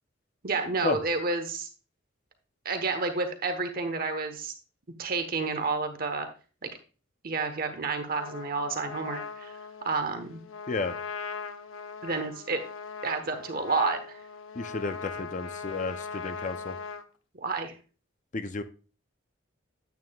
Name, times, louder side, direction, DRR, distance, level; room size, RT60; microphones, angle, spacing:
voice 1, 0.4-1.7 2.6-4.5 5.0-6.3 6.6-6.7 7.2-9.5 9.8-10.4 12.0-12.6 13.0-14.2 17.4-17.7, right 4 dB, 45° right, 7 dB, 1.0 m, -30 dB
Trumpet, 8.2-17.1, left 5 dB, 80° left, 0.8 m, -40 dB
voice 2, 14.6-16.8 18.3-18.6, left 3 dB, 40° left, 10 dB, 0.6 m, -32 dB
9.4 x 8.8 x 2.3 m, 0.35 s
head